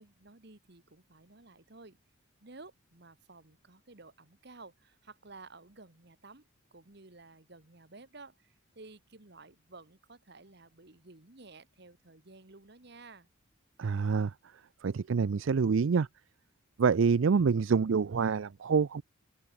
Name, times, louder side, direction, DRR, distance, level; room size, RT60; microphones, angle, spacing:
voice 1, 0.0-2.0 2.4-13.3, right 3 dB, 50° right, 1.5 m, -53 dB
voice 2, 13.8-14.3 14.8-16.1 16.8-19.0, right 5 dB, 70° right, 0.4 m, -26 dB
open air
head